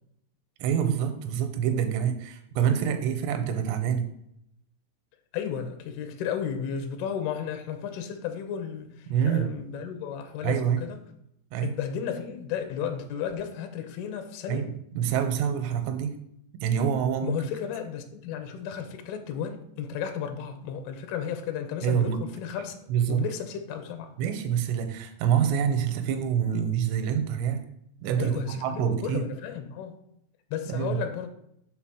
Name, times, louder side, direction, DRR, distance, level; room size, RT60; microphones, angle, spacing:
voice 1, 0.6-4.1 9.1-9.5 10.4-10.9 11.5-11.7 14.5-16.2 16.6-17.4 21.8-22.2 22.9-23.2 24.2-27.6 28.0-29.3 30.7-31.0, right 8 dB, 85° right, 2.8 m, -26 dB
voice 2, 5.3-11.0 11.6-14.7 17.2-22.8 23.1-24.2 28.2-30.0 30.5-31.3, left 8 dB, 75° left, 2.4 m, -33 dB
6.0 x 4.0 x 6.2 m
omnidirectional pair, 5.0 m